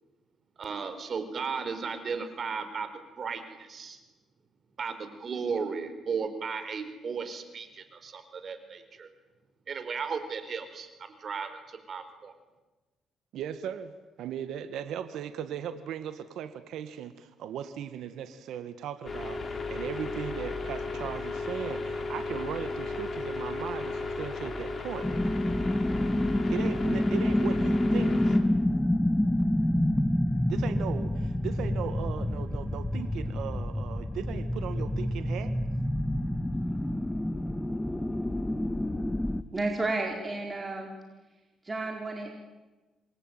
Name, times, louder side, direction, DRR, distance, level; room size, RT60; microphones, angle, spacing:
voice 1, 0.6-2.9 3.2-4.0 4.8-9.1 9.7-12.3, right 5 dB, 50° right, 10 dB, 4.2 m, -35 dB
voice 2, 13.3-13.9 14.2-25.1 26.5-28.4 30.5-35.5, right 9 dB, 80° right, 10 dB, 1.8 m, -38 dB
sound 1, 19.1-28.4, left 3 dB, 35° left, 4.6 m, -35 dB
sound 2, 25.0-39.4, left 1 dB, 10° left, 1.4 m, -28 dB
voice 3, 39.5-40.9 41.6-42.3, right 2 dB, 25° right, 2 dB, 4.4 m, -31 dB
28.5 x 22.0 x 9.2 m, 1.2 s
cardioid pair, 90°, 0 cm